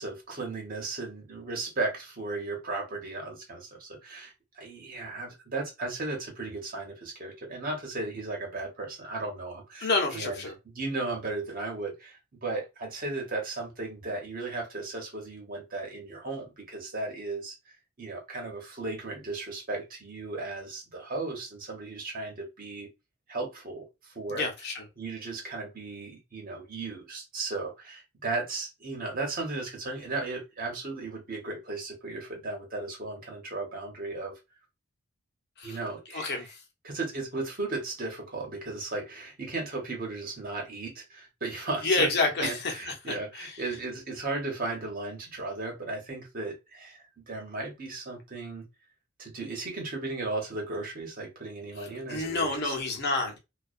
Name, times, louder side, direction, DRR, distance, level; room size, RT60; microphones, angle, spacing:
voice 1, 0.0-17.5 18.0-22.9 23.3-24.5 25.0-34.3 35.6-36.5 36.8-42.1 42.4-48.6 49.2-52.7, right 3 dB, 45° right, 1.1 m, -35 dB
voice 2, 9.8-10.5 24.3-24.8 35.6-35.8 36.1-36.5 41.8-42.7 43.0-43.6 51.8-53.4, left 3 dB, 55° left, 0.7 m, -29 dB
2.3 x 2.2 x 2.4 m
head